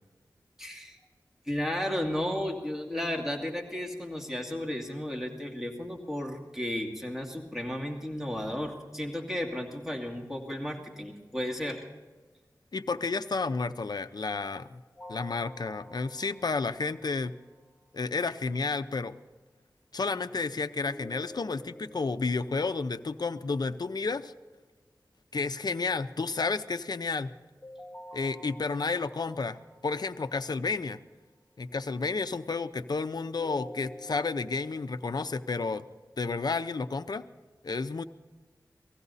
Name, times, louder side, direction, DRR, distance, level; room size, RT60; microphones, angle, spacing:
voice 1, 0.6-1.0 1.5-11.8, left 1 dB, 5° right, 1 dB, 2.4 m, -33 dB
voice 2, 12.7-14.8 15.1-17.3 17.9-19.2 19.9-24.3 25.3-27.3 28.1-29.6 29.8-31.0 31.6-35.8 36.2-37.2 37.6-38.0, left 4 dB, 65° left, 10 dB, 0.7 m, -31 dB
sound 1, 15.0-17.9 20.9-23.9 27.6-30.8 33.4-34.9, equal, 15° left, 2.6 m, -49 dB
18.5 x 15.0 x 4.1 m, 1.3 s
wide cardioid pair, 60°, 8 cm